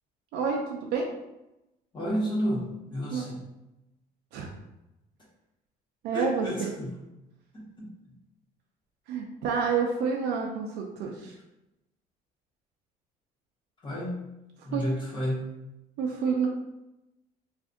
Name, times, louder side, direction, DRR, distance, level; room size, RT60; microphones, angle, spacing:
voice 1, 0.3-1.1 3.1-3.3 4.3-4.5 6.0-6.7 9.1-11.3 14.7-14.8 16.0-16.5, right 5 dB, 85° right, 0 dB, 0.5 m, -28 dB
voice 2, 1.9-3.4 6.1-6.9 7.5-8.1 13.8-14.2 14.6-15.5, equal, 30° left, -5 dB, 1.1 m, -31 dB
2.5 x 2.5 x 3.6 m, 0.95 s
cardioid pair, 110°, 17 cm